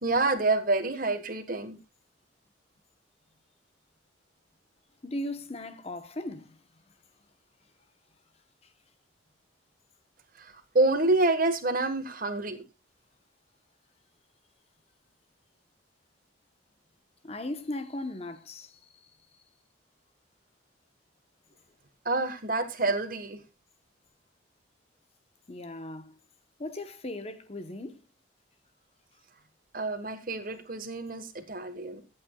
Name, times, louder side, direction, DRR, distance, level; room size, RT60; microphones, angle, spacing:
voice 1, 0.0-1.8 10.3-12.7 22.0-23.4 29.7-32.0, right 2 dB, 45° right, 1.5 m, -28 dB
voice 2, 5.0-6.9 8.6-8.7 17.2-19.1 25.5-26.2 26.6-28.0, left 1 dB, 30° left, 0.9 m, -38 dB
23.0 x 8.7 x 2.3 m
head